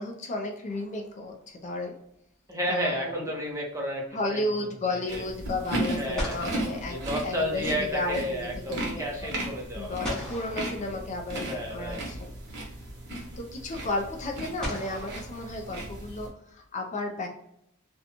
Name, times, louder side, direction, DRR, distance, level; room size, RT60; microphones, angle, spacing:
voice 1, 0.0-2.0 2.7-3.3 4.1-7.0 7.2-7.6 7.9-9.3 9.8-12.3 13.4-17.3, left 2 dB, 35° left, 3 dB, 0.4 m, -33 dB
sound 1, 0.7-1.5 5.6-5.7 6.1-7.9 10.0-11.6 13.0-13.1 14.6-16.2, equal, 5° left, 1.0 m, -39 dB
voice 2, 2.5-4.4 4.9-5.2 5.9-6.3 6.9-10.0 11.3-12.0, equal, 15° right, -1 dB, 0.7 m, -32 dB
sound 2, 5.1-16.3, right 1 dB, 55° right, 0.9 m, -36 dB
2.6 x 2.2 x 2.8 m, 0.77 s
head